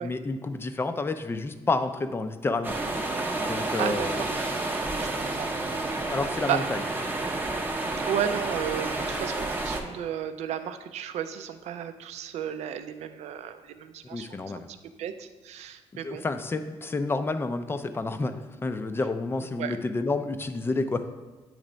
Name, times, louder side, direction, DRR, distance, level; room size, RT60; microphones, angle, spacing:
voice 1, 0.0-2.8 3.4-4.2 6.1-6.8 14.1-14.7 16.0-21.1, left 3 dB, 20° left, 9 dB, 0.4 m, -29 dB
sound 1, 2.6-9.8, right 2 dB, 15° right, 0.7 m, -30 dB
voice 2, 3.8-4.3 5.0-5.5 6.5-6.6 8.0-14.4 15.0-16.2 19.6-19.8, right 9 dB, 80° right, 10 dB, 0.5 m, -33 dB
8.8 x 3.2 x 5.0 m, 1.2 s
cardioid pair, 125°, 11 cm